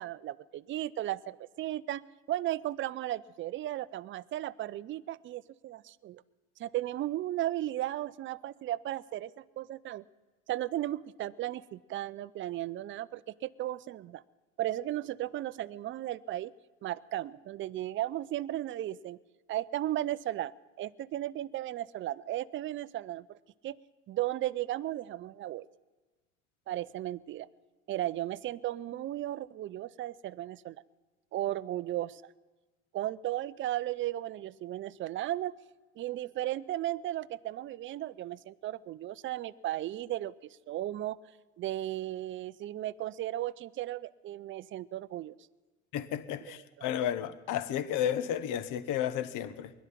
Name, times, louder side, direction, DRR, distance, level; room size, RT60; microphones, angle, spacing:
voice 1, 0.0-2.0 2.3-6.2 6.6-10.0 10.5-14.2 14.6-16.5 16.8-19.2 19.5-23.4 23.6-23.8 24.1-25.7 26.7-27.5 27.9-30.8 31.3-32.2 32.9-35.5 36.0-41.2 41.6-45.3 46.4-46.6, right 14 dB, 30° right, 0.5 m, -35 dB
voice 2, 45.9-49.7, left 10 dB, 45° left, 1.2 m, -32 dB
21.0 x 11.5 x 6.0 m
hypercardioid pair, 90°, 43 cm